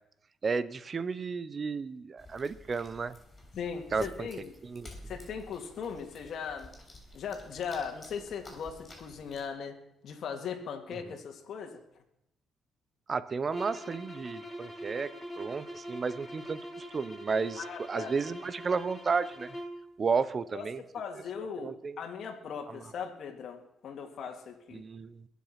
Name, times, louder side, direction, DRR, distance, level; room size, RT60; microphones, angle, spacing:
voice 1, 0.4-3.1 3.9-4.3 4.6-4.9 13.1-19.6 20.0-20.8 21.4-22.0 22.7-22.9 24.7-25.3, right 5 dB, 40° right, 16 dB, 0.9 m, -33 dB
sound 1, 2.2-9.4, left 1 dB, 25° left, 6.7 m, -51 dB
voice 2, 3.6-4.5 5.1-6.7 7.1-9.7 10.0-11.8 17.6-18.1 20.5-20.6 20.9-24.8, left 6 dB, 65° left, 3 dB, 2.3 m, -39 dB
sound 2, 13.5-19.8, equal, 10° left, 2.9 m, -43 dB
22.0 x 7.4 x 5.9 m, 0.80 s
cardioid pair, 90°, 0 cm